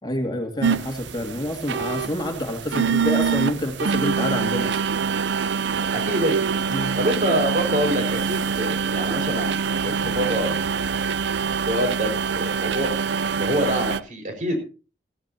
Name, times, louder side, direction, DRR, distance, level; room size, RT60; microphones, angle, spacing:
voice 1, 0.0-4.8 6.7-7.0, left 1 dB, 25° left, 3 dB, 2.1 m, -28 dB
sound 1, 0.6-14.0, right 6 dB, 90° right, 0.6 m, -25 dB
voice 2, 5.9-6.4 7.0-10.6 11.7-12.9 13.4-14.6, equal, 45° right, 4 dB, 5.4 m, -26 dB
17.0 x 15.0 x 2.8 m, 0.34 s
head